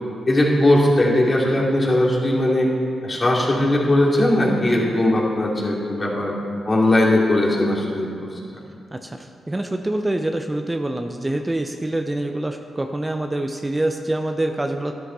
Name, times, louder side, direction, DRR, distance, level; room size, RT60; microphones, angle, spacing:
voice 1, 0.3-2.7 3.0-6.3 6.6-8.4, left 1 dB, 35° left, -3 dB, 2.7 m, -19 dB
voice 2, 8.9-14.9, right 1 dB, 20° right, 5 dB, 0.7 m, -25 dB
12.5 x 9.8 x 4.0 m, 2.5 s
supercardioid pair, 50°, 0 cm